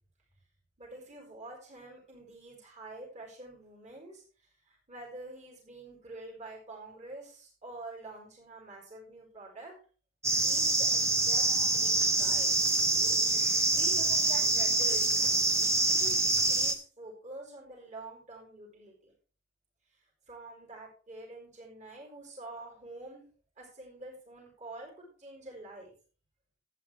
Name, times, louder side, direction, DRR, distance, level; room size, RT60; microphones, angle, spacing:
voice 1, 0.8-4.2 4.7-9.7 10.4-12.5 13.7-15.1 15.8-19.1 20.3-23.2 23.6-25.9, right 2 dB, 40° right, -2 dB, 4.6 m, -47 dB
sound 1, 10.2-16.7, right 2 dB, 15° right, 1.2 m, -26 dB
13.0 x 8.9 x 3.4 m, 0.38 s
head